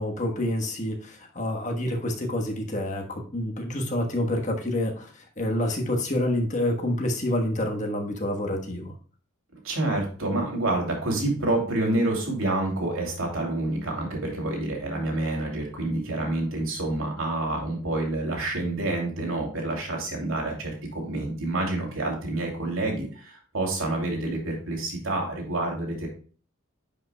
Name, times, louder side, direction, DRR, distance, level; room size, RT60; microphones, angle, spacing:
voice 1, 0.0-8.9, left 1 dB, 35° left, 2 dB, 1.3 m, -28 dB
voice 2, 9.6-26.1, right 2 dB, 85° right, 0 dB, 2.8 m, -28 dB
10.5 x 5.6 x 2.3 m, 0.41 s
head